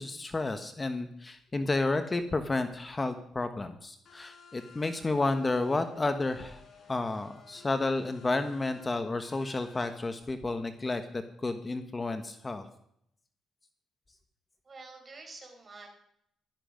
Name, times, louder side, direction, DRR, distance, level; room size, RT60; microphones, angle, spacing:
voice 1, 0.0-6.6 6.9-11.0 11.4-12.7, left 2 dB, 25° left, 9 dB, 1.2 m, -31 dB
sound 1, 4.1-10.0, left 6 dB, 55° left, 4.7 m, -55 dB
voice 2, 14.6-15.9, right 3 dB, 35° right, 2 dB, 4.9 m, -48 dB
15.0 x 13.0 x 5.1 m, 0.72 s
cardioid pair, 90°, 0 cm